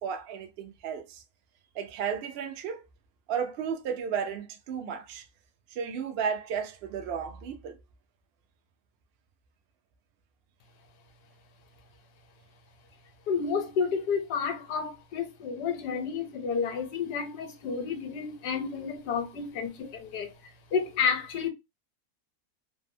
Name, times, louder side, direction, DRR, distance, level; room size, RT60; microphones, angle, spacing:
voice 1, 0.0-1.2 1.7-2.9 3.3-5.3 5.7-7.8, right 7 dB, 80° right, 0.5 m, -33 dB
voice 2, 13.3-20.3 20.7-21.5, left 6 dB, 75° left, 1.3 m, -30 dB
3.3 x 2.0 x 2.6 m
omnidirectional pair, 1.7 m